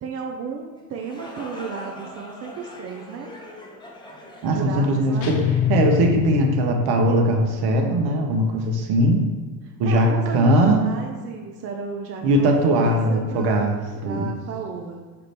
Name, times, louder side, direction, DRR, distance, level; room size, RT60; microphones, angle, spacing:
voice 1, 0.0-3.3 4.5-5.4 9.9-13.6 13.9-15.0, right 5 dB, 35° right, 1 dB, 0.5 m, -34 dB
sound 1, 0.8-6.5, left 1 dB, 10° left, 0.6 m, -42 dB
voice 2, 4.4-5.4 5.7-9.2 9.8-10.9 12.2-14.3, right 1 dB, 55° right, 2 dB, 0.9 m, -20 dB
sound 2, 5.2-7.3, left 10 dB, 55° left, 0.7 m, -24 dB
5.7 x 2.5 x 3.3 m, 1.5 s
supercardioid pair, 90°, 47 cm